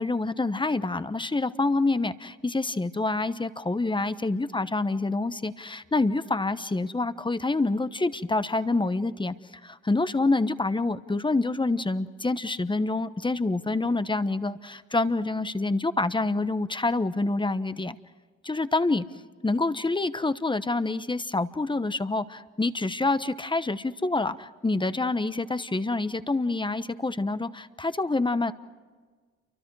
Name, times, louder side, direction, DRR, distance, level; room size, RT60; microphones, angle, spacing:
voice 1, 0.0-9.3 9.6-18.0 18.4-19.0 19.4-28.5, left 2 dB, 15° left, 13 dB, 1.1 m, -27 dB
29.0 x 24.5 x 4.8 m, 1.5 s
supercardioid pair, 70°, 30 cm